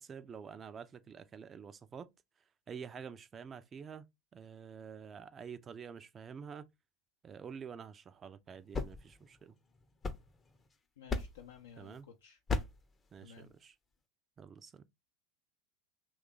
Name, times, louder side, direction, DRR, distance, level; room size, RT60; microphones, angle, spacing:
voice 1, 0.0-2.1 2.7-4.0 4.3-6.7 7.2-9.6 11.8-12.1 13.1-13.8 14.4-14.8, right 6 dB, 25° right, 0.4 m, -48 dB
sound 1, 8.5-10.7 11.1-11.6 12.5-12.9, left 3 dB, 20° left, 0.6 m, -38 dB
voice 2, 11.0-12.4 13.2-13.5, left 7 dB, 70° left, 0.5 m, -54 dB
2.9 x 2.3 x 3.7 m
figure-of-eight pair, 85°, 0 cm